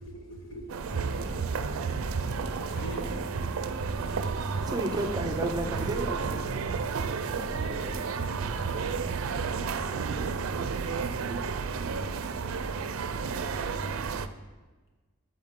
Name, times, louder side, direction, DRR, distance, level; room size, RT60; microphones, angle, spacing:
voice 1, 0.0-1.7 2.6-3.2 4.0-4.6 7.4-8.7, equal, 70° left, 0 dB, 1.7 m, -45 dB
sound 1, 0.7-14.3, right 5 dB, 85° right, 0.4 m, -32 dB
sound 2, 0.9-14.2, equal, 25° left, 1.3 m, -43 dB
Thunder / Rain, 2.5-10.9, equal, 45° left, 2.3 m, -45 dB
voice 2, 4.6-6.6, right 2 dB, 20° right, 4 dB, 0.6 m, -32 dB
10.5 x 6.2 x 3.7 m, 1.3 s
head